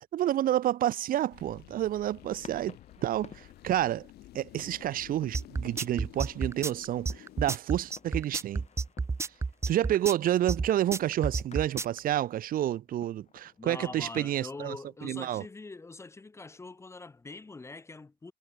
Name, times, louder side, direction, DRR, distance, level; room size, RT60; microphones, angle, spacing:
voice 1, 0.1-2.8 3.0-4.1 4.3-8.6 9.7-14.8 15.0-15.4, right 12 dB, 55° right, 0.7 m, -29 dB
sound 1, 1.3-7.6, left 15 dB, 75° left, 1.4 m, -52 dB
sound 2, 2.1-14.6, left 7 dB, 40° left, 2.5 m, -55 dB
sound 3, 5.3-12.0, right 4 dB, 15° right, 0.6 m, -31 dB
voice 2, 13.6-18.3, left 3 dB, 15° left, 0.7 m, -43 dB
cardioid pair, 110°, 17 cm